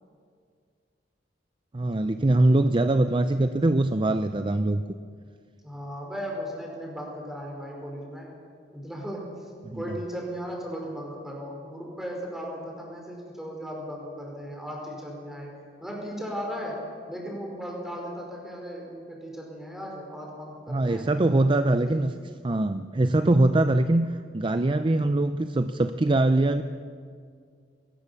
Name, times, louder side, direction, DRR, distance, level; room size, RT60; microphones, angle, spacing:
voice 1, 1.7-4.8 9.6-10.0 20.7-22.1 22.4-26.6, right 2 dB, 30° right, 10 dB, 0.5 m, -23 dB
voice 2, 5.6-8.3 8.7-15.5 15.8-16.8 17.1-21.0 21.9-22.0, equal, ahead, -2 dB, 5.1 m, -36 dB
21.0 x 18.5 x 7.0 m, 2.2 s
head